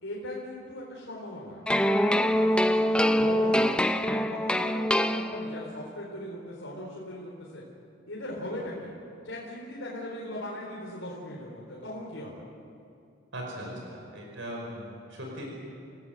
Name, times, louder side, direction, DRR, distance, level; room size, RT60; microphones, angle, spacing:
voice 1, 0.0-3.8 4.1-7.6 8.1-8.9 9.2-12.4, left 1 dB, 75° left, -4 dB, 4.3 m, -39 dB
sound 1, 1.7-5.8, equal, 5° left, 0.7 m, -24 dB
voice 2, 13.3-15.5, equal, 70° right, 0 dB, 5.3 m, -39 dB
29.5 x 18.0 x 8.0 m, 2.5 s
head